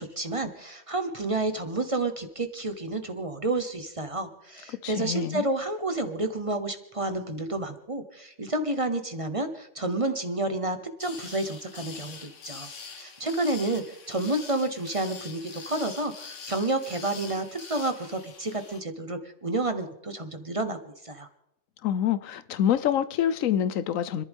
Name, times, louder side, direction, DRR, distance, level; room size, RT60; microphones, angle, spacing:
voice 1, 0.0-12.7 12.9-21.3, right 2 dB, 30° right, 1.0 m, -30 dB
voice 2, 4.8-5.5 21.8-24.2, left 9 dB, 85° left, 1.1 m, -26 dB
sound 1, 11.0-18.8, left 5 dB, 70° left, 1.5 m, -44 dB
30.0 x 11.0 x 3.6 m
omnidirectional pair, 1.3 m